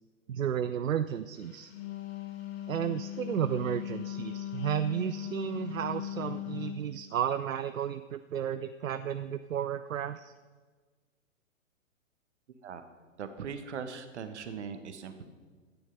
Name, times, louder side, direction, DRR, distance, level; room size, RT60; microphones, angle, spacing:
voice 1, 0.3-1.7 2.7-10.3, right 9 dB, 75° right, 11 dB, 0.6 m, -33 dB
Wind instrument woodwind instrument, 1.5-6.9, left 12 dB, 50° left, 1.8 m, -38 dB
voice 2, 13.2-15.3, right 6 dB, 55° right, 9 dB, 1.4 m, -40 dB
12.5 x 9.6 x 5.4 m, 1.4 s
figure-of-eight pair, 125°, 40 cm